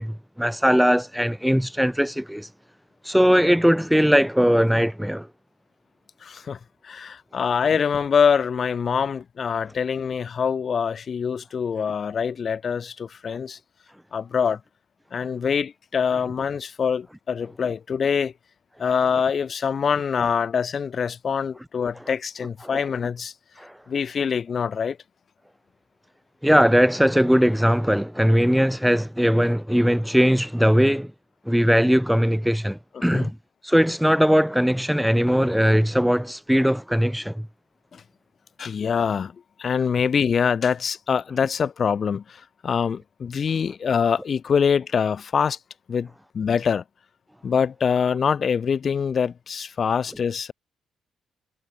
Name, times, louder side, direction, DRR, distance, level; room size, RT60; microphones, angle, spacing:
voice 1, 0.0-2.5 3.0-5.3 22.1-22.2 22.7-22.8 23.6-23.7 26.4-31.1 31.5-33.4 33.6-37.5, equal, ahead, 0.9 m, -20 dB
voice 2, 6.2-6.6 6.8-13.6 14.1-14.6 15.1-18.3 18.8-23.3 23.9-25.0 32.9-33.3 37.9-38.0 38.6-39.3 39.6-45.6 45.9-46.1 46.3-46.8 47.4-50.5, left 6 dB, 45° left, 0.3 m, -24 dB
cardioid pair, 90°, 0 cm